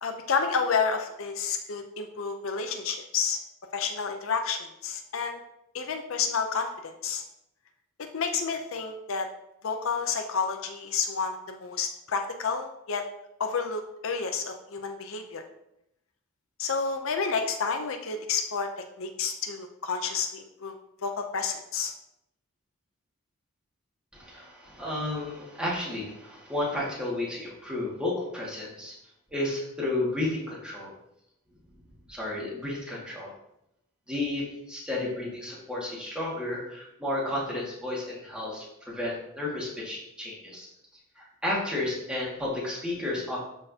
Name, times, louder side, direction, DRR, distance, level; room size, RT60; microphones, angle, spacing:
voice 1, 0.0-3.4 3.7-5.4 5.7-7.2 8.0-9.3 9.6-13.0 13.4-15.4 16.6-18.7 19.0-20.7 21.0-21.9, left 5 dB, 65° left, 5 dB, 0.6 m, -30 dB
voice 2, 24.1-28.9 29.3-30.9 32.1-33.3 34.1-40.7 41.2-43.4, left 2 dB, 5° right, -6 dB, 1.9 m, -32 dB
12.0 x 4.5 x 2.8 m, 0.83 s
head